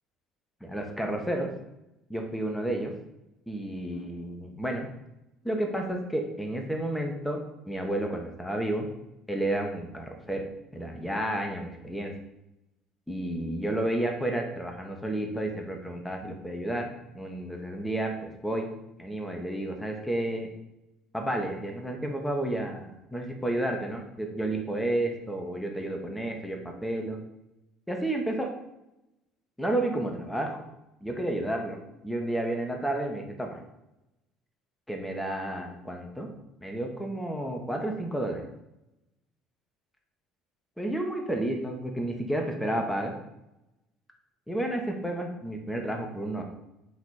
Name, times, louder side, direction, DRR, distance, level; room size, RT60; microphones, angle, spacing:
voice 1, 0.6-1.5 2.1-2.9 3.5-4.9 5.4-7.4 7.7-8.9 9.3-10.4 10.7-12.1 13.1-16.9 17.1-18.7 19.0-20.5 21.1-27.2 27.9-28.5 29.6-30.6 31.0-31.8 32.0-33.6 34.9-36.3 36.6-38.5 40.8-43.1 44.5-46.4, right 1 dB, 5° left, 2 dB, 1.3 m, -31 dB
8.0 x 3.2 x 4.3 m, 0.90 s
hypercardioid pair, 60°, 0 cm